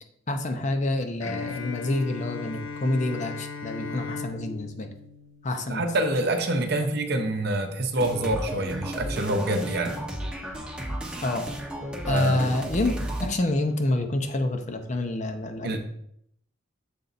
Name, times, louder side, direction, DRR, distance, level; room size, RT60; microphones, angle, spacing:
voice 1, 0.3-4.9 5.4-5.8 11.2-11.4 12.1-15.8, left 2 dB, 35° left, 6 dB, 0.6 m, -27 dB
Bowed string instrument, 1.2-6.1, left 5 dB, 85° left, 0.7 m, -37 dB
voice 2, 5.7-10.0 12.1-12.5 15.6-15.8, right 1 dB, 50° right, 5 dB, 0.7 m, -26 dB
sound 1, 8.0-13.3, right 1 dB, 5° right, 0.7 m, -33 dB
6.9 x 4.0 x 4.0 m, 0.72 s
head